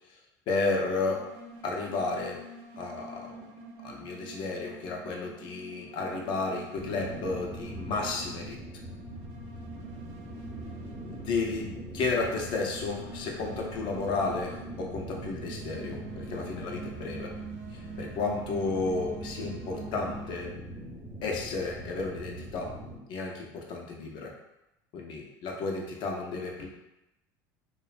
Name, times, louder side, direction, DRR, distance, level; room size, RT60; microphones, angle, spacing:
voice 1, 0.5-1.3 1.6-2.4 2.8-3.3 3.8-8.6 11.1-17.3 17.7-20.5 21.2-22.7 23.1-24.3 24.9-26.7, left 3 dB, 55° left, 0 dB, 0.5 m, -32 dB
sound 1, 0.9-20.3, right 3 dB, 65° right, 0.5 m, -46 dB
sound 2, 6.8-23.0, right 1 dB, 10° right, 0.9 m, -42 dB
2.4 x 2.1 x 2.4 m, 0.91 s
supercardioid pair, 105°, 9 cm